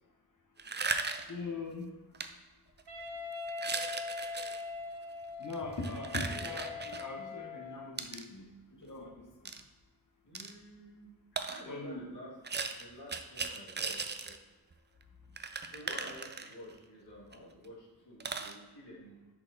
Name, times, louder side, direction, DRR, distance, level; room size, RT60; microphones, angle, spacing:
sound 1, 0.6-1.4 2.1-2.3 2.8-3.0 3.5-4.6 5.4-7.1 8.0-8.2 9.4-9.6 10.3-10.5 11.4-11.6 12.4-14.4 14.7-14.8 15.0-15.1 15.4-16.8 17.3-17.4 17.6-17.7 18.2-18.5, right 4 dB, 30° right, 0.4 m, -37 dB
voice 1, 1.3-2.0 5.4-8.5 8.8-9.3 11.6-12.1, left 2 dB, 50° left, 1 dB, 1.0 m, -41 dB
Wind instrument woodwind instrument, 2.9-7.9, left 4 dB, 85° right, 1.0 m, -42 dB
voice 2, 10.2-11.1 11.4-12.3 12.8-14.3 15.7-19.2, left 1 dB, 80° left, -6 dB, 2.0 m, -50 dB
5.8 x 4.1 x 3.9 m, 1.1 s
cardioid pair, 50°, 39 cm